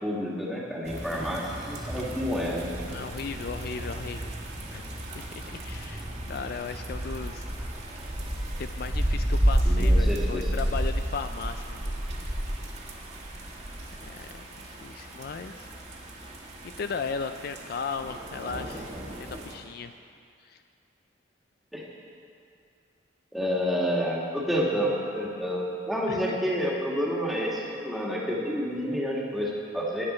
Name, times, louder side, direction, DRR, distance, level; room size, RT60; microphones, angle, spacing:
voice 1, 0.0-2.7 9.7-10.5 21.7-21.8 23.3-30.1, equal, ahead, -4 dB, 1.8 m, -29 dB
sound 1, 0.9-19.5, right 1 dB, 35° right, 1.5 m, -31 dB
voice 2, 2.9-4.3 4.7-4.9 5.2-7.4 8.6-11.9 14.0-15.7 16.8-18.9 19.2-19.9 20.4-20.6 26.1-26.4, left 5 dB, 55° left, 9 dB, 0.3 m, -36 dB
16.5 x 9.9 x 4.4 m, 2.4 s
head